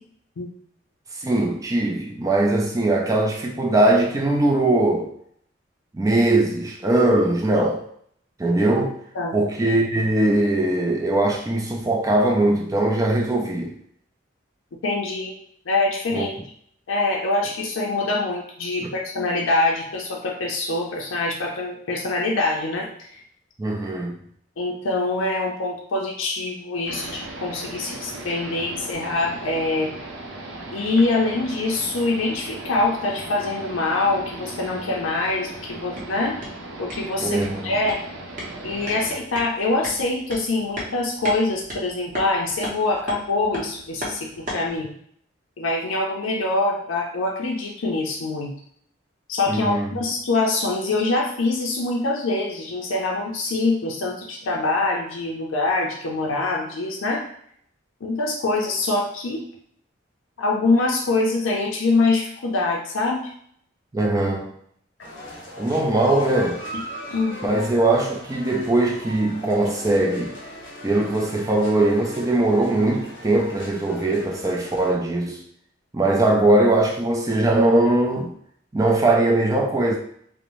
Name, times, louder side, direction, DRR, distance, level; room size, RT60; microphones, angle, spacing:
voice 1, 1.1-5.1 5.9-7.8 8.4-9.0 9.3-13.8 16.1-16.3 23.6-24.2 37.2-37.7 49.5-49.9 63.9-64.5 65.6-66.7 67.4-70.3 70.8-75.4 75.9-78.3 78.7-80.0, right 2 dB, 15° right, 1 dB, 0.3 m, -20 dB
voice 2, 14.8-15.3 15.7-16.3 16.9-23.2 24.6-29.9 30.7-36.4 36.8-38.0 38.6-44.9 45.6-48.5 49.3-57.3 58.0-59.4 60.4-63.3 66.7-66.8 67.1-67.4 76.1-76.2, left 2 dB, 80° left, -1 dB, 0.5 m, -24 dB
sound 1, 26.9-39.2, right 2 dB, 75° right, 0.5 m, -37 dB
sound 2, 35.7-44.8, equal, 40° right, 0.7 m, -37 dB
sound 3, 65.0-74.9, left 1 dB, 60° left, 0.8 m, -39 dB
2.6 x 2.0 x 3.0 m, 0.65 s
head